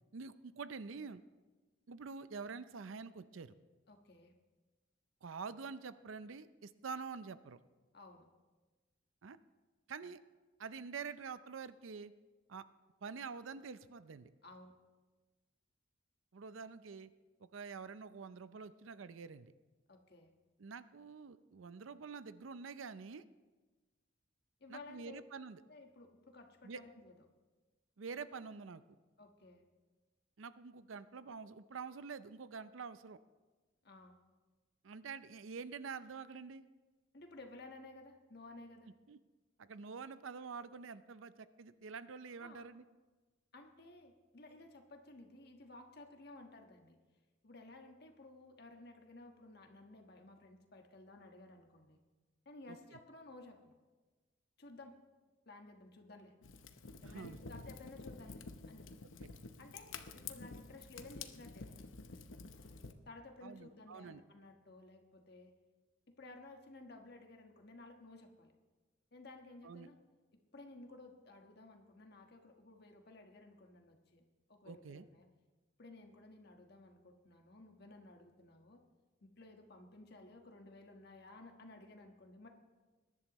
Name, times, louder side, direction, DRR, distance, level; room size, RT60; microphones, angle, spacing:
voice 1, 0.1-1.2 1.9-3.5 5.2-7.6 9.2-9.4 9.9-10.2 10.6-12.1 12.5-12.6 13.0-14.3 16.3-17.1 17.4-19.5 20.6-23.3 24.7-25.6 26.6-26.8 28.0-28.8 30.4-33.2 34.8-36.6 39.1-39.2 39.6-42.8 52.7-53.0 57.0-57.4 63.4-64.2 69.6-69.9 74.7-75.1, right 5 dB, 80° right, 14 dB, 0.5 m, -47 dB
voice 2, 3.9-4.3 7.9-8.3 14.4-14.7 19.9-20.3 24.6-25.2 25.7-27.1 29.2-29.6 33.8-34.2 37.1-38.9 42.4-42.6 43.5-47.0 47.4-52.0 52.4-53.7 54.6-55.0 55.5-56.3 57.0-59.1 59.6-61.8 63.1-65.5 66.1-68.5 69.1-70.0 70.5-74.2 74.5-75.3 75.8-78.8 79.2-82.5, left 2 dB, 55° left, 3 dB, 1.4 m, -55 dB
Fire, 56.4-62.9, left 4 dB, 80° left, 0.8 m, -50 dB
21.5 x 11.0 x 3.1 m, 1.3 s
head